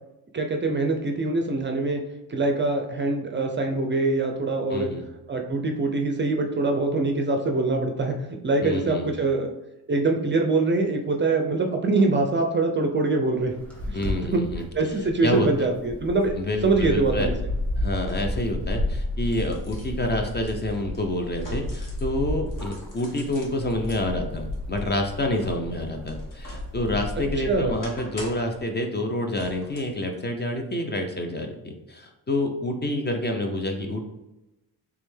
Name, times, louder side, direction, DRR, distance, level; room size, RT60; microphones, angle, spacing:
voice 1, 0.3-2.0 2.3-4.9 5.3-8.2 8.4-9.5 9.9-13.5 13.9-14.0 14.3-14.4 14.7-16.3 16.6-17.3 27.4-27.8, right 3 dB, 30° right, 3 dB, 0.5 m, -24 dB
voice 2, 4.7-5.0 8.6-9.3 13.9-14.6 15.2-15.5 16.4-17.3 17.8-34.0, left 1 dB, 25° left, 4 dB, 0.5 m, -28 dB
sound 1, 13.4-27.7, left 1 dB, 5° left, 1.3 m, -32 dB
sound 2, 16.7-16.8 18.0-18.5 19.0-22.1 22.5-24.0 24.5-26.7 27.1-28.6 29.3-30.0 30.4-30.6, left 1 dB, 55° left, 1.3 m, -44 dB
3.5 x 3.2 x 3.2 m, 0.96 s
cardioid pair, 95°, 39 cm